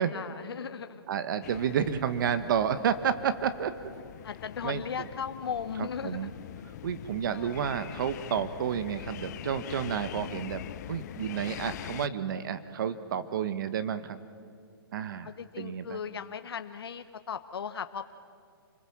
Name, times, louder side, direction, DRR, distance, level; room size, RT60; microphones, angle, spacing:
voice 1, 0.0-1.0 4.2-6.3 7.3-7.5 11.6-11.8 15.2-18.1, left 7 dB, 80° left, 9 dB, 1.0 m, -37 dB
voice 2, 1.1-3.9 4.6-5.1 5.8-6.3 6.8-14.2 14.9-15.3 15.6-16.0, right 8 dB, 55° right, 12 dB, 1.2 m, -31 dB
sound 1, 1.4-12.1, left 12 dB, 45° left, 0.5 m, -43 dB
28.5 x 21.0 x 7.2 m, 2.3 s
hypercardioid pair, 145°, 13 cm